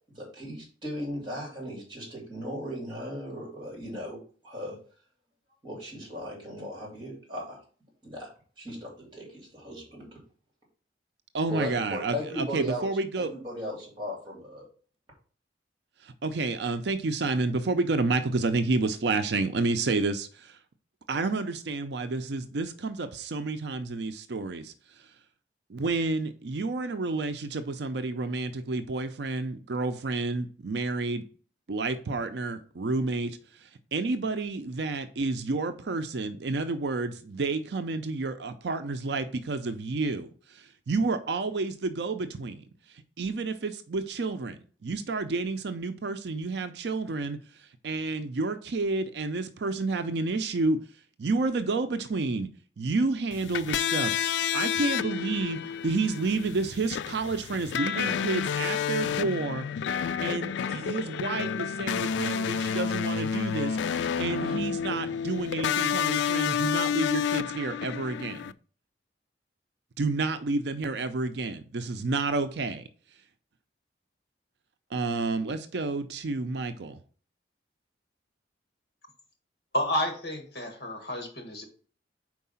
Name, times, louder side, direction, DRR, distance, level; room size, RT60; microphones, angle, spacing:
voice 1, 0.1-4.2 4.4-4.8 5.6-7.6 8.0-10.1 11.5-12.8 13.2-14.6, equal, 25° right, 2.8 m, -37 dB
voice 2, 11.3-13.3 16.0-20.6 21.1-24.7 25.7-31.2 31.7-42.7 43.2-50.8 51.2-52.5 52.8-59.7 60.2-68.5 70.0-72.8 74.9-77.0, right 3 dB, 70° right, 0.5 m, -30 dB
sound 1, 53.3-68.5, left 8 dB, 80° left, 0.3 m, -30 dB
voice 3, 79.7-81.6, left 1 dB, 60° left, 1.6 m, -30 dB
4.7 x 4.6 x 5.6 m
head